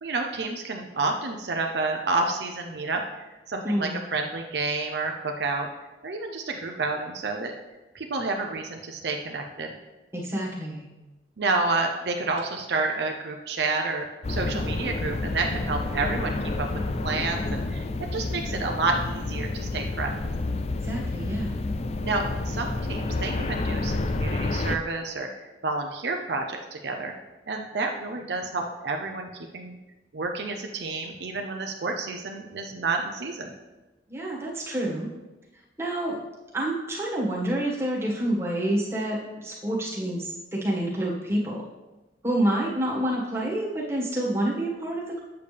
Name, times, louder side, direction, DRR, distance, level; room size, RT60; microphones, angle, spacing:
voice 1, 0.0-3.0 3.5-5.7 6.0-7.5 7.9-9.7 11.4-16.7 17.0-17.8 18.1-20.2 22.0-25.3 25.6-27.1 27.5-29.3 29.5-29.8 30.1-33.5, right 3 dB, 70° right, 3 dB, 0.7 m, -29 dB
voice 2, 3.6-4.0 10.1-10.9 20.8-21.5 34.1-35.1 35.8-36.2 36.5-41.6 42.2-45.2, right 1 dB, 15° right, -5 dB, 1.7 m, -28 dB
sound 1, 14.2-24.8, left 2 dB, 35° left, 0.4 m, -29 dB
8.6 x 6.8 x 3.4 m, 1.1 s
head